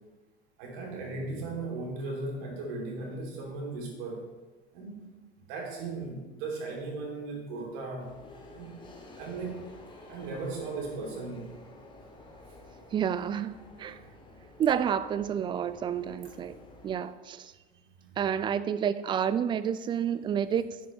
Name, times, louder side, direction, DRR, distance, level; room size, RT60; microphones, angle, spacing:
voice 1, 0.6-4.3 4.7-5.0 5.4-8.1 8.5-8.8 9.2-9.7 10.1-11.5 18.0-18.5, right 3 dB, 50° right, 3.1 m, -37 dB
sound 1, 8.0-17.0, left 2 dB, 15° left, 1.9 m, -51 dB
voice 2, 12.9-13.5 13.8-14.0 14.6-16.6 16.8-17.5 18.2-20.7, right 8 dB, 15° right, 0.4 m, -29 dB
11.5 x 9.3 x 3.3 m
figure-of-eight pair, 80°, 30 cm